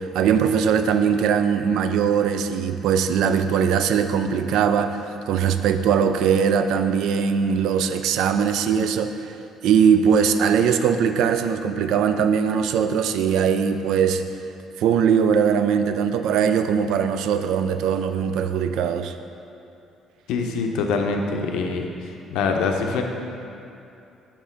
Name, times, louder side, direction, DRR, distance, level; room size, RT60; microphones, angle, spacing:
voice 1, 0.0-9.3 9.6-14.2 14.8-19.1, right 7 dB, 80° right, 8 dB, 0.3 m, -21 dB
voice 2, 20.3-21.9 22.3-23.0, left 4 dB, 85° left, 3 dB, 0.5 m, -24 dB
4.9 x 3.6 x 5.5 m, 2.7 s
cardioid pair, 95°, 0 cm